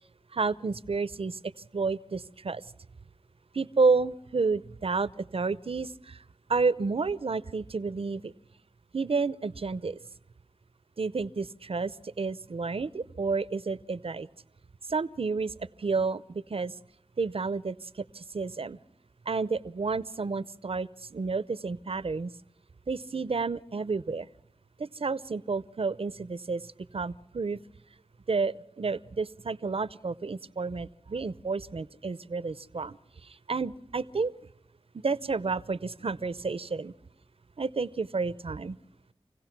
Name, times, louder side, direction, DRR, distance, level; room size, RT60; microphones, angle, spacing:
voice 1, 0.3-1.4 1.7-2.6 3.5-6.2 6.5-8.3 8.9-10.0 11.0-14.3 14.9-16.7 17.2-18.8 19.3-22.3 22.9-24.3 24.8-27.6 28.3-34.3 35.0-36.9 37.6-38.8, right 4 dB, 60° right, 17 dB, 0.6 m, -30 dB
27.0 x 16.5 x 6.0 m, 0.83 s
wide cardioid pair, 45°, 11 cm